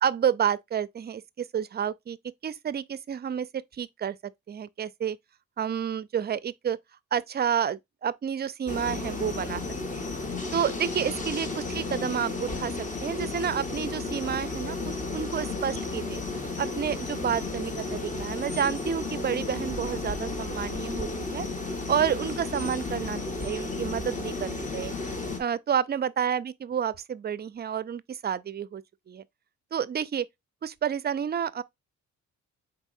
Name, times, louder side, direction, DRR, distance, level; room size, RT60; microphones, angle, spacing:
voice 1, 0.0-2.2 2.4-3.5 3.7-4.2 4.5-5.2 5.6-6.8 7.1-9.6 9.9-10.1 10.5-12.7 13.0-16.2 16.6-21.5 21.9-24.9 25.4-29.2 29.7-30.3 30.6-31.6, right 8 dB, 35° right, 0.4 m, -30 dB
sound 1, 8.7-25.4, left 3 dB, 25° left, 1.3 m, -33 dB
4.5 x 4.1 x 2.6 m
cardioid pair, 90°, 30 cm